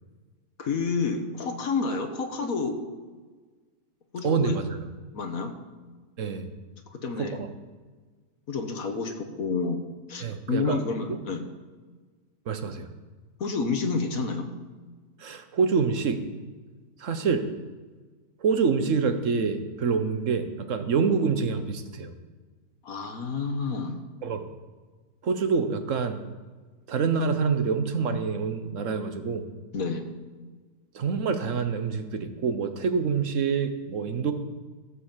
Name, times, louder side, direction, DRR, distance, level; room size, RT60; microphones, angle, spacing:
voice 1, 0.6-2.8 4.1-4.6 5.1-5.5 6.9-7.4 8.5-9.8 10.1-11.5 13.4-14.5 22.8-24.0 29.7-30.0, left 4 dB, 55° left, 5 dB, 1.7 m, -29 dB
voice 2, 4.2-4.6 6.2-6.5 7.2-7.5 10.2-10.8 11.1-11.2 12.5-12.9 15.2-16.2 17.0-17.5 18.4-22.1 24.2-24.5 25.2-26.2 26.9-29.5 30.9-34.3, right 5 dB, 50° right, 8 dB, 1.3 m, -26 dB
15.0 x 5.8 x 7.4 m, 1.4 s
omnidirectional pair, 1.8 m